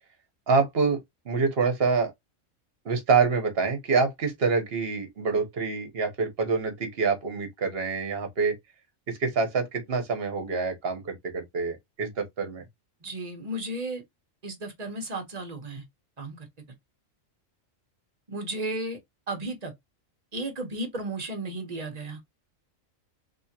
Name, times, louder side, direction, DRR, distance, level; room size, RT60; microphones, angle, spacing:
voice 1, 0.5-2.1 2.8-8.6 9.1-12.6, right 4 dB, 50° right, 1.2 m, -26 dB
voice 2, 13.0-14.0 14.4-15.8 16.2-16.5 18.3-19.0 19.3-19.7 20.3-22.2, right 2 dB, 35° right, 1.0 m, -34 dB
3.4 x 2.9 x 2.8 m
omnidirectional pair, 1.4 m